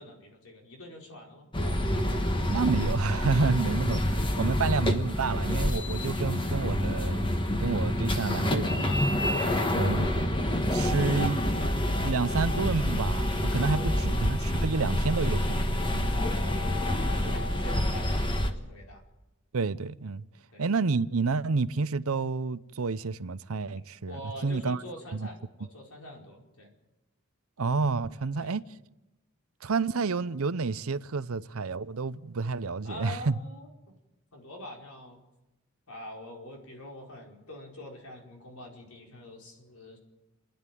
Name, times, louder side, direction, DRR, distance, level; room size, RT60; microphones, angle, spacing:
voice 1, 0.0-1.5 8.8-9.4 13.7-14.2 16.1-19.0 20.5-20.7 24.1-26.7 28.1-28.6 32.8-33.7 34.3-35.2 35.9-40.0, left 1 dB, 85° left, 4.7 m, -45 dB
sound 1, 1.5-18.5, left 1 dB, 25° left, 1.3 m, -27 dB
voice 2, 2.5-7.3 7.6-8.9 9.8-10.1 10.7-11.5 12.0-16.2 17.2-17.4 19.5-20.2 20.6-24.8 25.1-25.3 27.6-28.6 29.6-33.4, right 4 dB, 75° right, 0.7 m, -29 dB
28.5 x 10.5 x 9.3 m
head